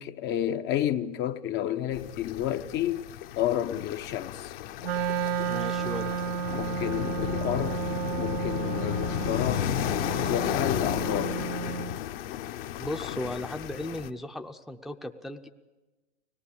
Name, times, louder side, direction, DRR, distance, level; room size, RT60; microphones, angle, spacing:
voice 1, 0.0-3.1 3.4-4.5 6.5-7.8 8.1-9.7 10.0-11.4, left 11 dB, 30° left, 0.8 m, -30 dB
sound 1, 1.9-14.1, left 12 dB, 55° left, 1.2 m, -33 dB
Wind instrument woodwind instrument, 4.8-12.0, right 7 dB, 60° right, 0.8 m, -32 dB
voice 2, 5.4-6.1 12.8-15.5, left 1 dB, ahead, 0.7 m, -36 dB
24.0 x 18.5 x 8.6 m
hypercardioid pair, 110°, 34 cm